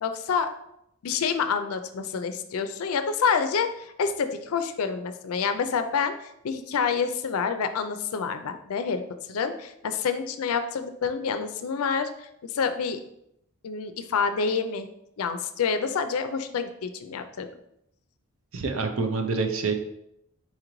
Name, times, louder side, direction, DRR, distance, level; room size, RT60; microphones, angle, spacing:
voice 1, 0.0-0.5 1.0-6.1 6.4-9.0 9.3-13.0 13.6-14.9 15.2-17.5, left 6 dB, 75° left, 9 dB, 0.4 m, -27 dB
voice 2, 18.5-19.7, right 4 dB, 65° right, 6 dB, 0.5 m, -26 dB
4.2 x 3.8 x 3.0 m, 0.80 s
head